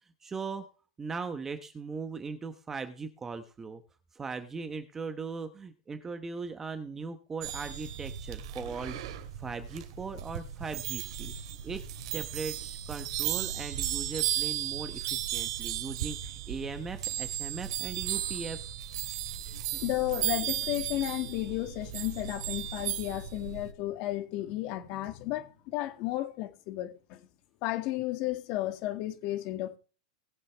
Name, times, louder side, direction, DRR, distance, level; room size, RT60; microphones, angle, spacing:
voice 1, 0.2-0.6 1.0-3.8 4.1-11.3 11.6-11.8 12.1-18.7 19.4-19.9, right 4 dB, 10° right, 0.9 m, -39 dB
sound 1, 7.4-23.7, right 11 dB, 55° right, 2.6 m, -35 dB
voice 2, 19.5-27.3 27.6-29.8, left 16 dB, 35° left, 2.0 m, -33 dB
20.0 x 7.4 x 3.4 m
supercardioid pair, 170°, 3 cm